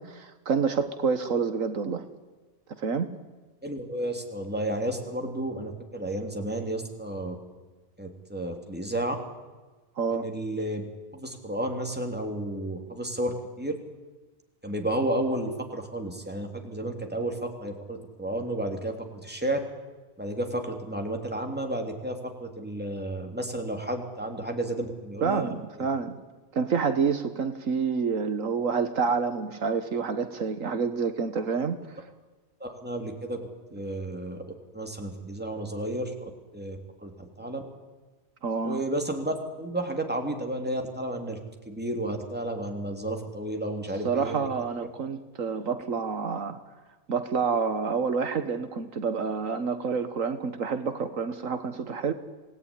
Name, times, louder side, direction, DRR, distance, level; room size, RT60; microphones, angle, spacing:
voice 1, 0.0-2.0 2.8-3.1 10.0-10.3 25.2-26.2 26.5-31.8 38.4-38.8 44.0-46.6 47.1-52.1, right 5 dB, 70° right, 9 dB, 1.6 m, -28 dB
voice 2, 3.6-7.3 8.0-9.2 10.1-10.8 11.1-13.7 14.6-19.6 20.2-25.5 25.8-25.9 32.6-33.4 33.7-34.4 34.7-37.6 38.6-41.4 41.7-44.5, right 1 dB, 5° right, 3 dB, 3.2 m, -32 dB
26.5 x 18.5 x 10.0 m, 1.3 s
omnidirectional pair, 1.4 m